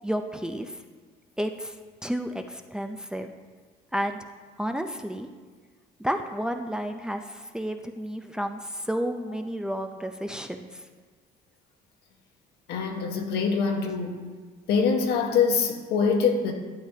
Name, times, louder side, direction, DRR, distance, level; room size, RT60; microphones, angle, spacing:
voice 1, 0.0-0.8 1.4-1.8 2.0-3.3 3.9-4.3 4.6-5.3 6.0-10.8, equal, 5° right, 5 dB, 0.5 m, -31 dB
voice 2, 12.7-14.2 14.7-16.5, left 5 dB, 75° left, 3 dB, 1.2 m, -24 dB
12.0 x 8.6 x 2.8 m, 1.4 s
cardioid pair, 110°, 17 cm